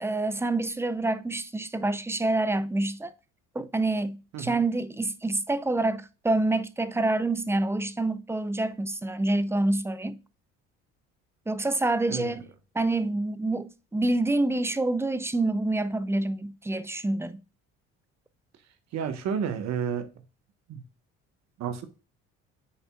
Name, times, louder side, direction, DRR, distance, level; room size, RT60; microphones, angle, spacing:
voice 1, 0.0-3.1 3.5-10.2 11.5-12.5 12.7-17.4, right 2 dB, 10° right, 0.5 m, -27 dB
voice 2, 18.9-20.1 20.7-20.8 21.6-21.9, right 7 dB, 65° right, 1.3 m, -31 dB
10.0 x 4.2 x 2.3 m
supercardioid pair, 85°, 29 cm